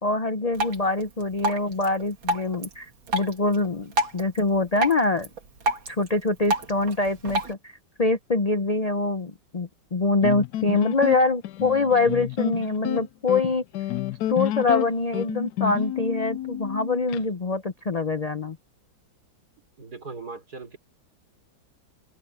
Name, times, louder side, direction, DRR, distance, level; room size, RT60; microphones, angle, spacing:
voice 1, 0.0-5.3 5.9-13.6 14.3-18.6, left 3 dB, 50° left, 0.4 m, -24 dB
Drip, 0.5-7.5, right 1 dB, 80° right, 3.1 m, -31 dB
sound 1, 10.2-17.2, left 13 dB, 70° left, 1.0 m, -29 dB
voice 2, 19.8-20.8, right 4 dB, 50° right, 4.9 m, -39 dB
omnidirectional pair, 2.1 m